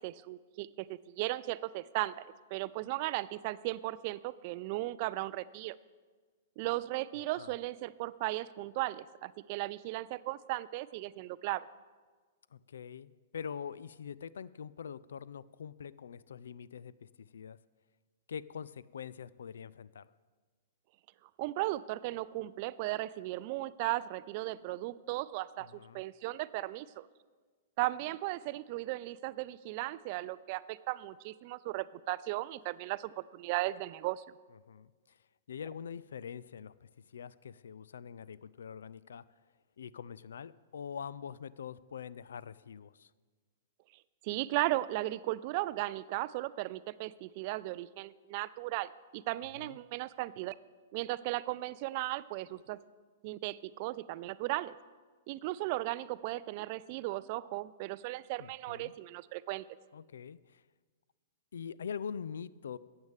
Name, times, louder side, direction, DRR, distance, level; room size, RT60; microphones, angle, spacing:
voice 1, 0.0-2.3 2.5-5.8 6.6-11.7 21.4-25.7 25.9-27.1 27.8-34.2 44.2-50.5 50.9-52.8 53.2-54.8 55.3-59.7, right 18 dB, 45° right, 18 dB, 0.3 m, -36 dB
voice 2, 12.5-17.6 18.3-20.1 25.6-26.0 34.7-35.2 35.5-39.2 39.8-43.1 49.6-49.8 58.4-58.9 59.9-60.6 61.5-62.8, left 7 dB, 65° left, 19 dB, 0.3 m, -44 dB
15.0 x 8.9 x 3.6 m, 1.5 s
figure-of-eight pair, 105°, 0 cm